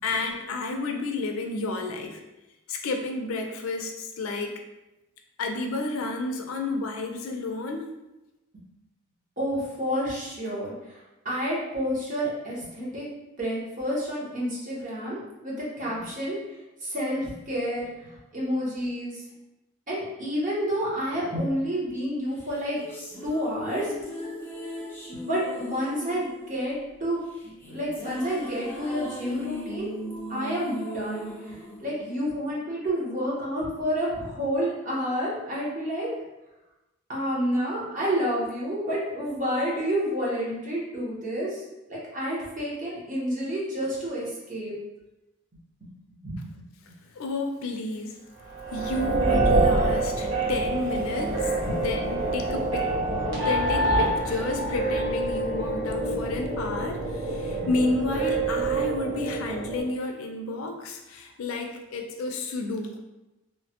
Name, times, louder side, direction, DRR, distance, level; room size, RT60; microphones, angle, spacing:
voice 1, 0.0-2.2 2.7-4.6 5.4-7.9 47.1-48.2 48.7-52.9 53.4-63.0, left 3 dB, 90° left, 4 dB, 0.4 m, -31 dB
voice 2, 9.4-11.0 11.2-13.0 13.4-15.2 15.4-16.4 16.8-19.2 19.9-22.8 23.2-23.9 25.3-29.9 30.3-36.1 37.1-41.6 41.9-44.7 46.2-46.6 51.7-51.8 56.1-56.2 57.5-57.7, equal, 40° right, -6 dB, 0.9 m, -29 dB
sound 1, 22.4-32.8, equal, 10° left, 0.5 m, -38 dB
sound 2, 48.5-59.8, right 2 dB, 70° right, 0.9 m, -26 dB
3.1 x 2.1 x 2.8 m, 0.99 s
head